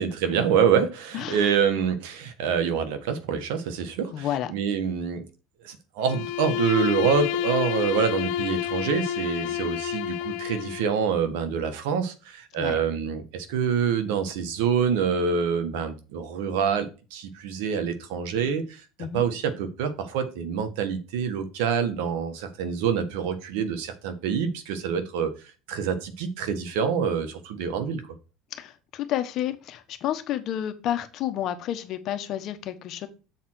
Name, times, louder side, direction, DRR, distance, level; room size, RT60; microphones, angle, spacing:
voice 1, 0.0-5.2 5.6-18.8 19.1-25.3 25.7-28.0, right 7 dB, 80° right, 1.4 m, -26 dB
voice 2, 1.1-1.5 4.1-4.5 9.4-9.6 12.6-12.8 19.0-19.2 28.5-33.1, left 11 dB, 55° left, 1.3 m, -30 dB
Bowed string instrument, 6.0-10.9, left 12 dB, 75° left, 0.8 m, -29 dB
7.2 x 4.3 x 6.2 m
supercardioid pair, 110°, 0 cm